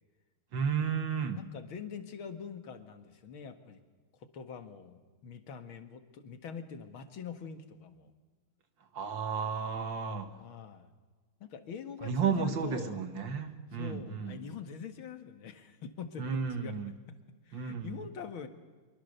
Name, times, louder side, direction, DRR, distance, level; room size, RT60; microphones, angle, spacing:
voice 1, 0.5-1.4 8.9-10.4 12.0-14.4 16.2-16.9 17.5-18.0, right 6 dB, 60° right, 9 dB, 2.3 m, -33 dB
voice 2, 1.4-3.8 4.3-8.1 10.4-10.9 11.4-13.0 13.7-16.7 17.5-18.5, left 6 dB, 65° left, 9 dB, 2.5 m, -44 dB
25.0 x 23.5 x 6.8 m, 1.4 s
omnidirectional pair, 2.4 m